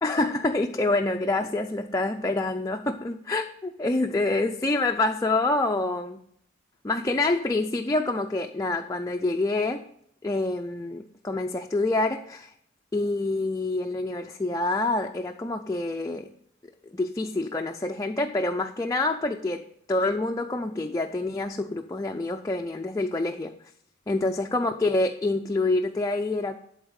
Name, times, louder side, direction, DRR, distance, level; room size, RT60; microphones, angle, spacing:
voice 1, 0.0-6.2 6.8-9.8 10.2-12.5 12.9-16.3 16.9-19.6 19.9-23.5 24.1-26.6, left 2 dB, 15° left, 3 dB, 0.4 m, -27 dB
11.5 x 4.0 x 6.4 m, 0.68 s
head